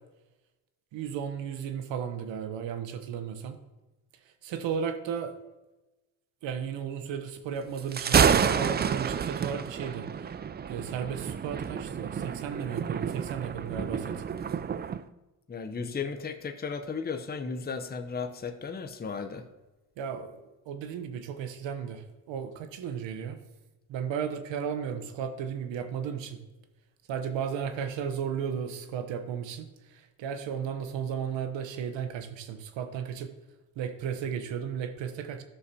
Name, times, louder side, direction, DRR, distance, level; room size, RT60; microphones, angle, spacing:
voice 1, 0.9-3.6 4.4-5.4 6.4-10.1 10.7-14.2 20.0-20.4 20.7-23.4 23.9-26.4 27.1-33.3 33.8-35.4, right 7 dB, 75° right, 8 dB, 1.0 m, -34 dB
Thunder, 7.8-15.0, right 7 dB, 25° right, 0.3 m, -29 dB
voice 2, 15.5-19.4, left 5 dB, 20° left, 7 dB, 0.7 m, -35 dB
11.0 x 6.6 x 2.8 m, 1.1 s
supercardioid pair, 70°, 45 cm